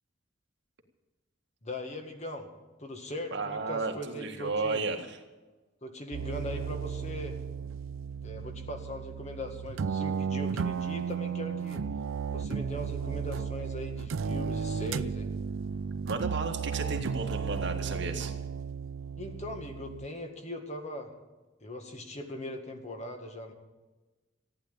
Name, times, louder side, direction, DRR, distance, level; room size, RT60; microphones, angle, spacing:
voice 1, 1.6-2.5 2.8-4.8 5.8-7.4 8.2-11.8 12.3-15.3 19.2-21.1 21.6-23.5, left 1 dB, 35° left, 4 dB, 1.9 m, -40 dB
voice 2, 3.3-5.2 16.0-18.3, right 3 dB, 65° right, 3 dB, 1.9 m, -33 dB
sound 1, 6.1-20.1, right 6 dB, 90° right, 0.4 m, -34 dB
14.5 x 10.0 x 8.5 m, 1.2 s
head